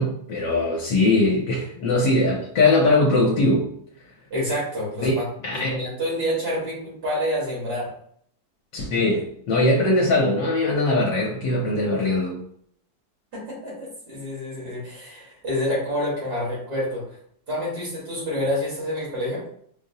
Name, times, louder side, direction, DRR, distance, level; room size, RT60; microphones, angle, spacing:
voice 1, 0.0-3.6 5.0-5.1 5.4-5.8 8.7-12.4, left 2 dB, 80° left, -4 dB, 1.4 m, -21 dB
voice 2, 4.3-5.3 5.5-7.9 13.3-17.1 17.5-19.4, equal, 60° right, -6 dB, 2.0 m, -28 dB
5.1 x 2.0 x 2.7 m, 0.65 s
omnidirectional pair, 2.0 m